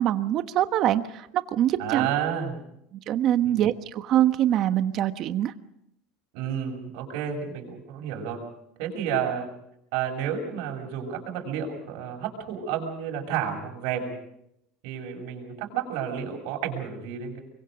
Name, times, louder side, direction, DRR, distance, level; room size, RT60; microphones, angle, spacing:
voice 1, 0.0-2.1 3.1-5.5, right 12 dB, 45° right, 10 dB, 1.2 m, -24 dB
voice 2, 1.8-2.6 3.4-3.6 6.3-8.4 8.8-9.5 9.9-14.1 14.8-17.4, right 8 dB, 70° right, 1 dB, 6.7 m, -31 dB
25.0 x 23.0 x 5.2 m, 0.79 s
supercardioid pair, 140°, 0 cm